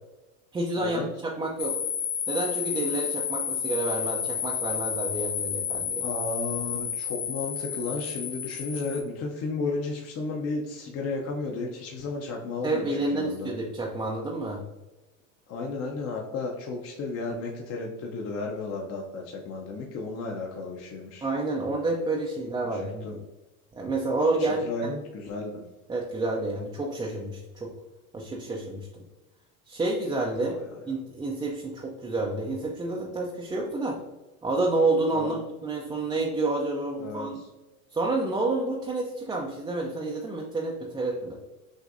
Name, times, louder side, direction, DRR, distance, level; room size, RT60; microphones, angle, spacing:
voice 1, 0.5-1.8 2.3-6.0 12.6-14.6 21.2-23.2 23.7-24.6 25.9-27.7 28.1-29.0 29.7-30.6 30.9-34.0 34.4-37.4 37.9-41.3, right 2 dB, 10° right, -2 dB, 0.3 m, -29 dB
sound 1, 1.6-9.0, left 8 dB, 90° left, 0.9 m, -31 dB
voice 2, 6.0-13.5 15.5-21.3 22.6-23.2 24.4-25.6 30.6-30.8 35.1-35.3 37.0-37.4, left 3 dB, 35° left, 0 dB, 0.6 m, -33 dB
6.3 x 2.6 x 2.5 m, 1.1 s
supercardioid pair, 110°, 40 cm